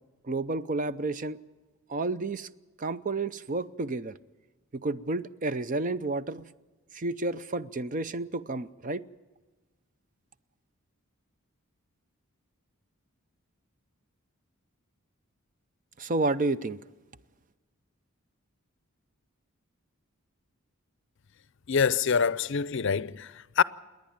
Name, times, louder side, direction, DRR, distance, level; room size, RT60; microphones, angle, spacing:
voice 1, 0.2-1.4 1.9-2.5 2.8-4.2 4.7-6.5 6.9-9.0 16.0-16.8, right 2 dB, 40° right, 0.6 m, -31 dB
voice 2, 21.7-23.6, left 6 dB, 60° left, 0.5 m, -25 dB
28.5 x 10.5 x 8.7 m
head